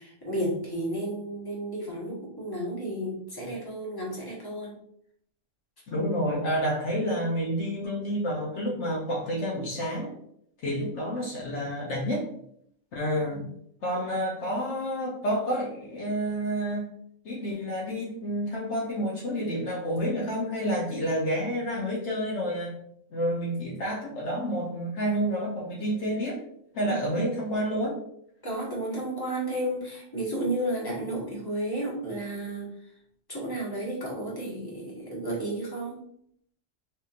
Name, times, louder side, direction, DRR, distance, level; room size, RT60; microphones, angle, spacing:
voice 1, 0.0-4.7 13.3-13.4 26.8-27.4 28.4-32.7 33.3-36.0, right 1 dB, 20° left, -4 dB, 1.3 m, -32 dB
voice 2, 5.9-10.1 10.6-12.3 12.9-13.4 13.8-16.9 17.2-22.7 23.1-26.4 26.7-28.0, equal, 65° left, -3 dB, 1.0 m, -29 dB
4.3 x 3.7 x 2.4 m, 0.69 s
omnidirectional pair, 1.3 m